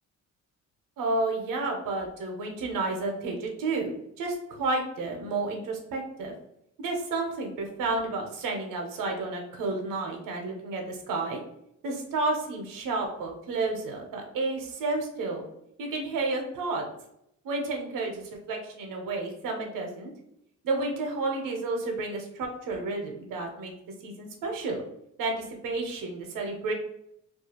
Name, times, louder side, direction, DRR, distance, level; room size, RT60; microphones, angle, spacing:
voice 1, 1.0-6.3 6.8-11.4 11.8-15.4 15.8-16.9 17.4-20.1 20.6-23.7 24.0-24.8 25.2-26.7, right 3 dB, 80° right, 2 dB, 0.6 m, -31 dB
2.3 x 2.3 x 2.8 m, 0.77 s
cardioid pair, 105°, 33 cm